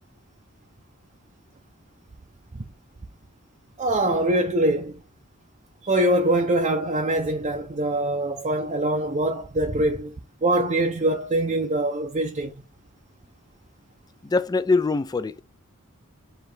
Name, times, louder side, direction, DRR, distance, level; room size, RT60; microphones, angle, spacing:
voice 1, 3.8-5.0 5.8-10.1 10.4-12.5, right 1 dB, 30° right, 0.6 m, -23 dB
voice 2, 14.2-15.4, left 3 dB, 20° left, 0.3 m, -23 dB
4.6 x 3.2 x 3.3 m
head